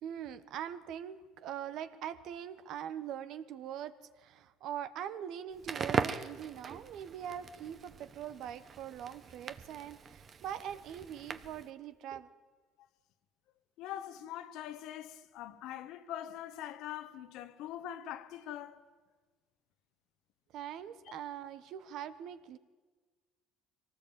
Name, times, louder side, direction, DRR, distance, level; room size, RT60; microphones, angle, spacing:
voice 1, 0.0-12.3 20.5-22.6, right 9 dB, 65° right, 1.3 m, -42 dB
Crackle, 5.5-11.7, right 6 dB, 40° right, 1.2 m, -40 dB
voice 2, 13.8-18.8 21.1-21.2, left 11 dB, 75° left, 1.5 m, -43 dB
23.5 x 18.5 x 8.9 m
supercardioid pair, 95°, 0 cm